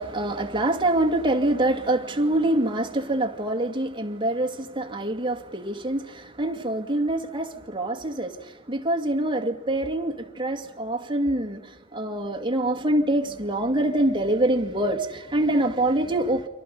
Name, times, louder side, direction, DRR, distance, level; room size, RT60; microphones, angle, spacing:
voice 1, 0.0-16.5, right 1 dB, 25° right, 3 dB, 2.3 m, -25 dB
30.0 x 25.5 x 5.5 m, 1.1 s
head